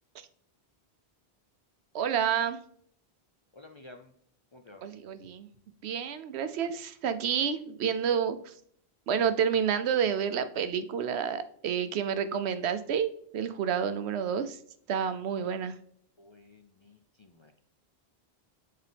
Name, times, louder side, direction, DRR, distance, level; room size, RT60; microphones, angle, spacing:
voice 1, 1.9-2.6 4.8-5.5 5.8-8.5 9.1-14.6 14.9-15.7, right 7 dB, 90° right, 11 dB, 0.9 m, -29 dB
voice 2, 3.5-4.1 4.5-4.8 16.2-17.6, left 2 dB, 45° left, 5 dB, 0.4 m, -52 dB
7.4 x 3.8 x 3.4 m, 0.65 s
omnidirectional pair, 1.1 m